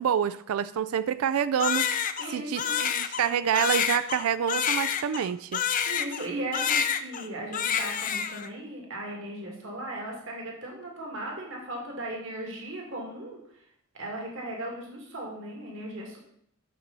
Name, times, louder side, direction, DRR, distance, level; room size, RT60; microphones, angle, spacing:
voice 1, 0.0-1.9 2.3-5.6, right 8 dB, 80° right, 15 dB, 0.3 m, -27 dB
Crying sobbing, 1.6-6.3 6.5-7.3 7.5-8.5, left 7 dB, 35° left, 0.5 m, -28 dB
voice 2, 2.2-2.8 5.9-13.6 13.9-16.2, right 1 dB, 60° right, -1 dB, 2.2 m, -37 dB
10.5 x 6.7 x 4.1 m, 0.68 s
head